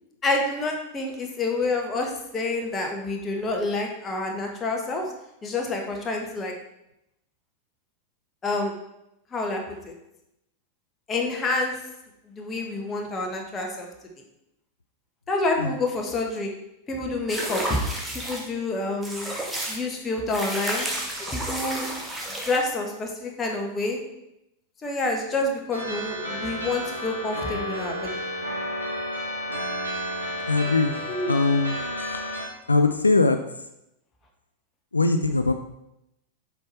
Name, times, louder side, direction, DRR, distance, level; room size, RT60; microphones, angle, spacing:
voice 1, 0.2-5.0 5.4-6.5 8.4-8.7 9.3-9.9 11.1-11.7 12.4-13.9 15.3-16.5 16.9-17.8 18.1-19.3 19.7-20.9 21.3-21.9 22.4-24.0 24.8-28.1 31.1-31.4, left 2 dB, 20° left, 1 dB, 1.4 m, -28 dB
sound 1, 17.3-18.5 19.0-19.8 20.3-22.6, right 1 dB, 5° right, 1.4 m, -31 dB
sound 2, 25.7-32.5, equal, 80° right, 2.2 m, -31 dB
voice 2, 30.5-30.9 31.3-31.8 32.1-32.2 32.7-33.7 34.9-35.5, left 3 dB, 80° left, 7 dB, 0.4 m, -21 dB
7.3 x 4.6 x 4.4 m, 0.85 s
figure-of-eight pair, 90°, 0 cm